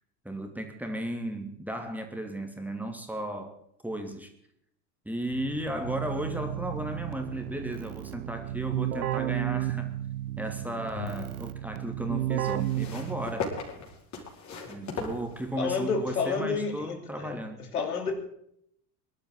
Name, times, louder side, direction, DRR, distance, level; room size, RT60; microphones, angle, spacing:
voice 1, 0.2-3.6 3.8-4.3 5.0-9.9 10.4-13.5 14.6-17.6, right 1 dB, 5° right, 4 dB, 2.8 m, -35 dB
Keyboard (musical), 5.3-13.6, right 13 dB, 70° right, 1.1 m, -33 dB
sound 1, 10.5-11.3 12.4-15.9 16.8-16.9, left 4 dB, 35° left, 5.0 m, -38 dB
voice 2, 15.6-17.3 17.7-18.1, left 5 dB, 75° left, 4 dB, 3.1 m, -30 dB
24.0 x 12.0 x 4.1 m, 0.71 s
figure-of-eight pair, 75°, 46 cm